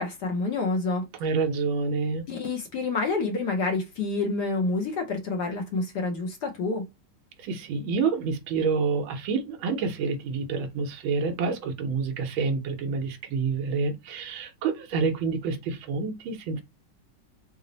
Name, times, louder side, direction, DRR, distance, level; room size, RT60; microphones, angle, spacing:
voice 1, 0.0-1.1 2.3-6.9, left 3 dB, 65° left, 1.1 m, -28 dB
voice 2, 1.2-2.3 7.4-16.6, right 5 dB, 75° right, 1.6 m, -28 dB
4.0 x 2.0 x 3.8 m
omnidirectional pair, 2.3 m